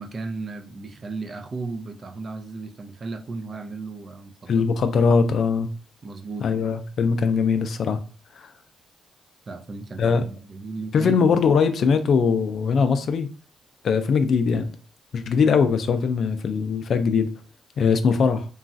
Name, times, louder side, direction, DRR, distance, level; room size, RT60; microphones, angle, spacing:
voice 1, 0.0-4.7 6.0-6.5 9.5-11.2, right 3 dB, 40° right, 0.4 m, -35 dB
voice 2, 4.5-5.7 6.4-8.0 8.4-8.5 10.0-10.2 10.9-13.3 13.8-14.7 15.1-17.3 17.8-18.5, left 5 dB, 60° left, 0.4 m, -21 dB
3.0 x 2.3 x 2.6 m
cardioid pair, 90°, 0 cm